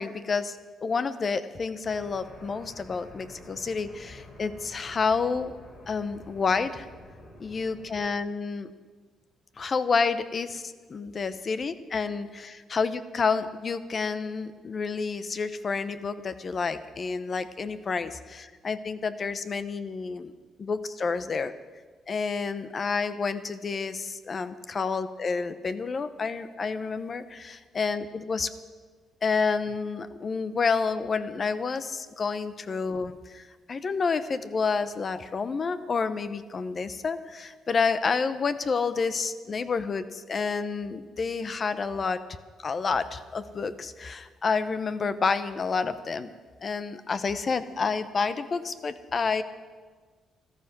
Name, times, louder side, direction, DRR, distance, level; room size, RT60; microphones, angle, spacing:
voice 1, 0.0-5.5 5.9-6.9 7.4-8.7 9.6-20.3 20.6-21.5 22.1-28.5 29.2-33.4 33.7-42.2 42.6-46.3 46.6-49.4, left 5 dB, 40° left, 13 dB, 0.8 m, -29 dB
sound 1, 1.8-8.0, left 1 dB, 60° left, 5.0 m, -49 dB
13.5 x 13.0 x 6.1 m, 1.5 s
cardioid pair, 90°, 0 cm